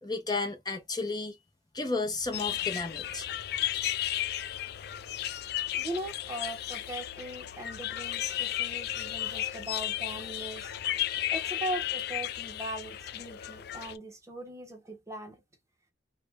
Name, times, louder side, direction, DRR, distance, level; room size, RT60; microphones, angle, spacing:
voice 1, 0.0-1.4 1.7-3.3, left 3 dB, 25° left, 0.8 m, -33 dB
sound 1, 2.3-14.0, left 12 dB, 60° left, 0.3 m, -34 dB
voice 2, 5.7-10.7 11.3-15.4, right 1 dB, 15° right, 0.8 m, -39 dB
3.3 x 2.2 x 3.3 m
head